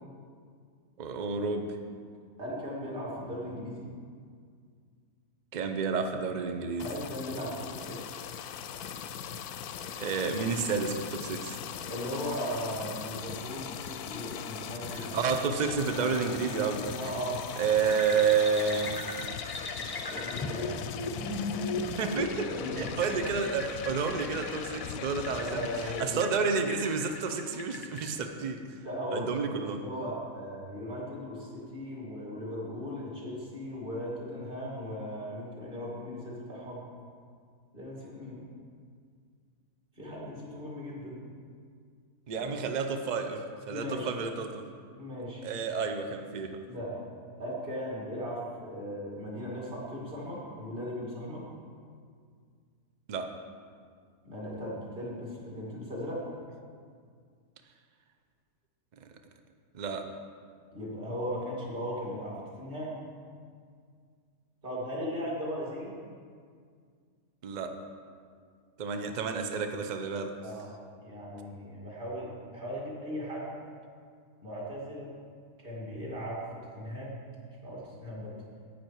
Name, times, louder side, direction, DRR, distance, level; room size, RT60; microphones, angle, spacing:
voice 1, 1.0-1.8 5.5-6.9 10.0-11.6 14.9-17.0 17.6-18.9 21.6-28.8 29.1-29.8 42.3-44.6 45.4-46.6 53.1-53.3 59.0-59.1 59.7-60.1 67.4-67.8 68.8-70.4, right 5 dB, 70° right, 6 dB, 0.4 m, -30 dB
voice 2, 2.4-3.9 6.8-8.1 11.9-15.1 15.9-16.1 17.0-17.4 20.0-20.8 22.5-23.3 25.3-26.3 28.8-36.8 37.7-38.4 40.0-41.2 42.3-42.5 43.7-44.1 45.0-45.4 46.7-47.0 47.4-51.5 54.2-56.2 60.7-63.0 64.6-66.0 70.4-70.7 71.0-73.6 74.4-75.1 75.6-77.2 77.6-78.3, equal, 35° right, -5 dB, 2.5 m, -37 dB
sound 1, 6.8-26.0, left 8 dB, 85° left, 1.1 m, -40 dB
sound 2, 17.9-28.1, left 2 dB, 30° left, 0.4 m, -38 dB
10.5 x 8.7 x 4.6 m, 2.1 s
omnidirectional pair, 1.6 m